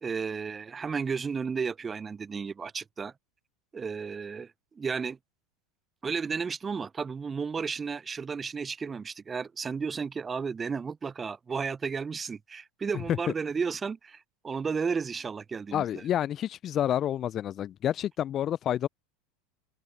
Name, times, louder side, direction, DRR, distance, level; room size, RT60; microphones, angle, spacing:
voice 1, 0.0-3.1 3.7-4.5 4.8-5.2 6.0-16.0, right 5 dB, 25° right, 0.7 m, -33 dB
voice 2, 15.7-18.9, left 11 dB, 40° left, 0.4 m, -29 dB
open air
hypercardioid pair, 80°, 0 cm